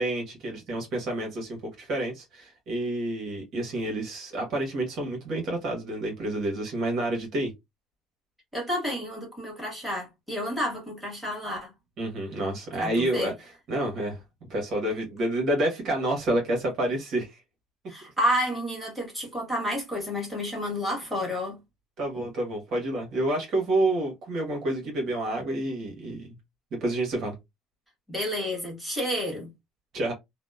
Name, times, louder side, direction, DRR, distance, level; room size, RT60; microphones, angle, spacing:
voice 1, 0.0-7.5 12.0-14.2 14.5-17.4 22.0-26.4 26.7-27.4 29.9-30.1, right 1 dB, 55° right, 1.2 m, -29 dB
voice 2, 8.5-11.7 12.8-13.3 17.9-21.6 28.1-29.5, equal, ahead, 1.5 m, -30 dB
2.8 x 2.1 x 2.3 m
supercardioid pair, 105°, 0 cm